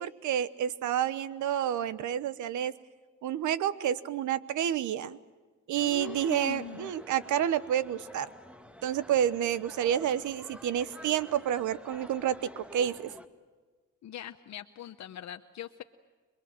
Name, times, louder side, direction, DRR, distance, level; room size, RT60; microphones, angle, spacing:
voice 1, 0.0-2.7 3.2-5.2 5.7-8.3 8.8-13.1, right 10 dB, 75° right, 16 dB, 1.1 m, -29 dB
sound 1, 5.7-13.3, equal, 5° right, 1.5 m, -49 dB
voice 2, 5.8-6.9 14.0-15.8, left 11 dB, 65° left, 8 dB, 0.9 m, -41 dB
27.0 x 21.5 x 7.7 m, 1.4 s
cardioid pair, 90°, 30 cm